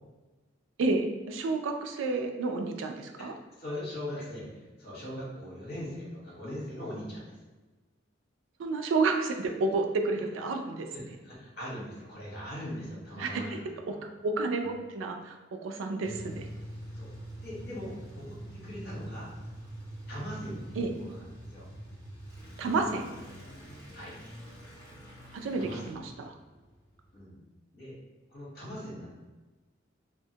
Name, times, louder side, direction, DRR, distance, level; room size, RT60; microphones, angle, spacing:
voice 1, 0.8-3.3 8.6-10.9 13.2-13.6 13.9-15.4 15.6-16.5 20.8-20.9 22.6-23.1 25.3-26.0, right 3 dB, 85° right, 4 dB, 0.3 m, -30 dB
voice 2, 3.2-7.4 10.9-14.1 14.6-14.7 16.9-19.3 20.1-21.7 23.9-24.1 25.6-25.9 27.1-27.3 27.7-27.9 28.3-29.1, equal, 55° left, -6 dB, 1.1 m, -41 dB
sound 1, 16.0-27.2, right 1 dB, 10° left, 1.3 m, -45 dB
2.7 x 2.2 x 2.7 m, 1.2 s
head